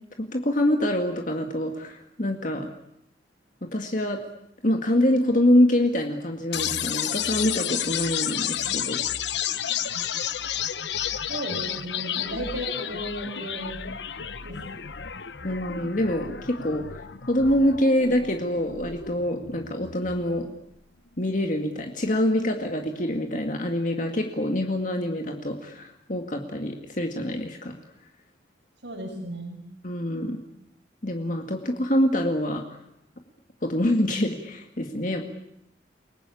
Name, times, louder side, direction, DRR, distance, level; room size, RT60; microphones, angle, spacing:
voice 1, 0.2-2.7 3.6-4.2 4.6-9.0 15.4-20.5 21.2-27.8 29.8-30.4 31.0-32.6 33.6-35.3, left 1 dB, 45° left, 3 dB, 2.1 m, -25 dB
sound 1, 6.5-20.5, left 9 dB, 70° left, 1.1 m, -31 dB
voice 2, 11.3-13.9 14.4-14.8 28.8-29.6, right 1 dB, 85° right, -3 dB, 6.2 m, -35 dB
29.5 x 19.5 x 8.6 m, 0.81 s
head